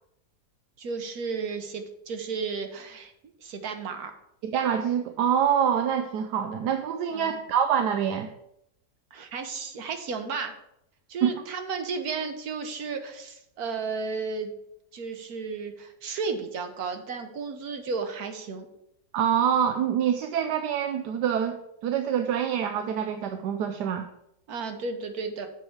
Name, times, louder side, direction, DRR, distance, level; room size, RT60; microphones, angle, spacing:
voice 1, 0.8-3.1 3.4-4.1 7.1-7.4 9.1-10.6 11.1-14.5 14.9-18.7 24.5-25.5, right 4 dB, 65° right, 6 dB, 1.4 m, -33 dB
voice 2, 4.4-8.3 11.2-11.3 19.1-21.6 21.8-24.1, right 8 dB, 85° right, 6 dB, 1.2 m, -25 dB
7.5 x 4.7 x 7.1 m, 0.78 s
omnidirectional pair, 1.7 m